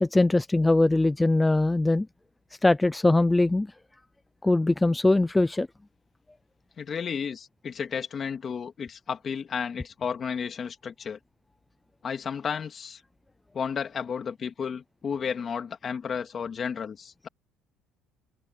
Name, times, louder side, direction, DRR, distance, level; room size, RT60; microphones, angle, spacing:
voice 1, 0.0-2.1 2.6-3.7 4.4-5.7, left 2 dB, 10° left, 0.5 m, -21 dB
voice 2, 6.8-11.2 12.0-13.0 13.5-17.3, left 6 dB, 30° left, 2.5 m, -32 dB
cardioid pair, 165°, 0 cm